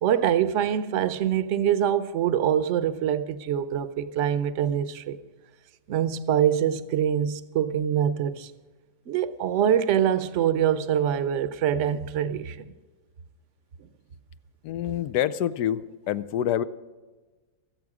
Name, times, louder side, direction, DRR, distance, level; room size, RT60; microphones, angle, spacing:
voice 1, 0.0-5.2 5.9-8.5 9.1-12.7, right 9 dB, 60° right, 0.9 m, -24 dB
voice 2, 14.6-15.8 16.1-16.6, left 11 dB, 85° left, 1.2 m, -26 dB
24.0 x 8.1 x 4.9 m
omnidirectional pair, 1.7 m